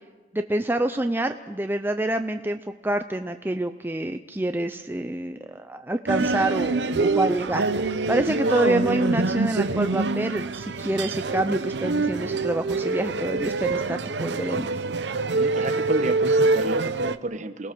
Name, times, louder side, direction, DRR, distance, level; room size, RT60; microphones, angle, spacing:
voice 1, 0.3-14.7 15.1-15.3, right 1 dB, 10° right, 7 dB, 0.6 m, -27 dB
sound 1, 6.1-17.2, right 3 dB, 75° right, 0.8 m, -25 dB
voice 2, 15.3-17.7, right 2 dB, 45° right, 9 dB, 1.2 m, -31 dB
28.5 x 19.0 x 6.2 m, 1.3 s
head